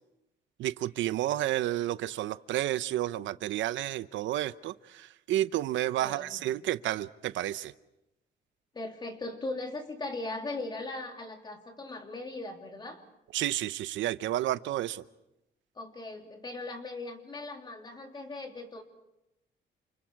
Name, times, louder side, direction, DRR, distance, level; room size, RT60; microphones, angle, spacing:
voice 1, 0.6-7.7 13.3-15.0, right 13 dB, 85° right, 14 dB, 0.8 m, -31 dB
voice 2, 6.0-6.4 8.7-13.0 15.7-18.8, left 2 dB, 25° left, 3 dB, 3.0 m, -39 dB
28.5 x 28.0 x 4.7 m, 0.89 s
cardioid pair, 145°, 19 cm